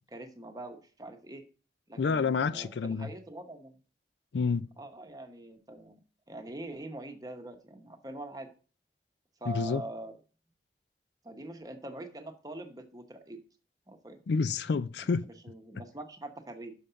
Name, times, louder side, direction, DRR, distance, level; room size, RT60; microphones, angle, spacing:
voice 1, 0.1-1.4 1.9-3.8 4.8-6.0 6.3-8.5 9.4-10.1 11.2-13.4 13.9-14.2 15.1-16.7, right 1 dB, 20° right, 0.9 m, -43 dB
voice 2, 2.0-3.1 4.3-4.7 9.5-9.8 14.3-15.2, left 5 dB, 75° left, 0.4 m, -28 dB
6.5 x 5.3 x 5.6 m
head